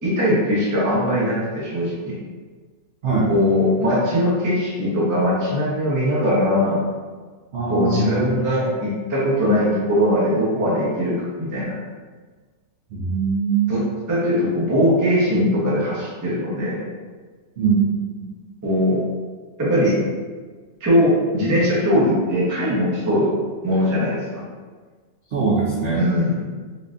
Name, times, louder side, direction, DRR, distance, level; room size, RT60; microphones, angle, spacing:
voice 1, 0.0-2.1 3.3-6.9 7.7-11.7 13.7-13.8 14.1-16.8 18.6-19.0 19.6-20.0 20.8-23.3 23.6-24.4 25.9-26.4, equal, 20° right, -7 dB, 0.4 m, -20 dB
voice 2, 7.5-8.4 12.9-13.9 17.6-18.0 25.3-26.0, right 5 dB, 70° right, -6 dB, 0.6 m, -21 dB
3.8 x 2.5 x 2.4 m, 1.4 s
omnidirectional pair, 1.9 m